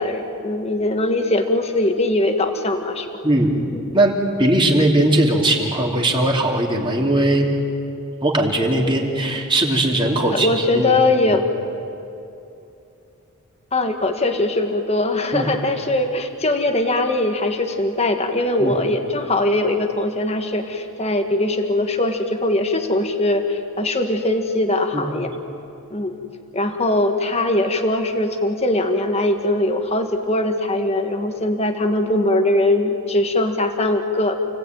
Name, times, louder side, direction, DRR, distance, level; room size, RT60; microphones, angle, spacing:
voice 1, 0.0-3.1 8.8-8.9 10.2-11.4 13.7-25.3 25.9-26.1 26.5-34.4, left 2 dB, 30° left, 5 dB, 1.6 m, -21 dB
voice 2, 3.2-3.5 3.9-7.5 8.2-10.9 11.2-11.4 15.3-15.5 18.6-18.8 24.9-25.3, right 1 dB, 20° right, 0 dB, 2.8 m, -19 dB
29.5 x 18.5 x 9.2 m, 2.8 s
head